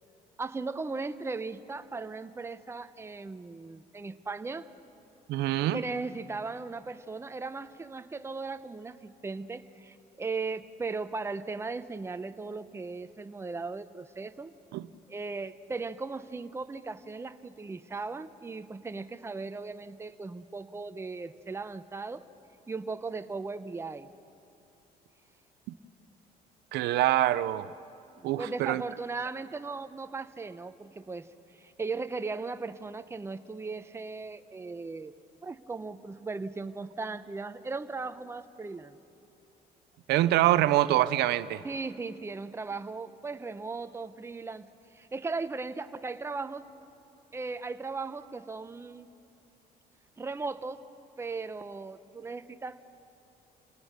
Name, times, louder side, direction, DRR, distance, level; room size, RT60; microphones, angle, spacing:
voice 1, 0.4-4.7 5.7-14.5 15.1-22.2 22.7-24.1 28.2-35.1 35.4-39.0 41.6-44.7 44.9-46.7 47.3-49.1 50.2-50.8 51.2-52.9, right 4 dB, 15° right, 11 dB, 0.7 m, -37 dB
voice 2, 5.3-5.8 14.7-14.9 26.7-27.7 28.2-28.8 40.1-41.6, right 14 dB, 80° right, 15 dB, 0.6 m, -25 dB
28.5 x 19.0 x 6.6 m, 2.8 s
cardioid pair, 110°, 17 cm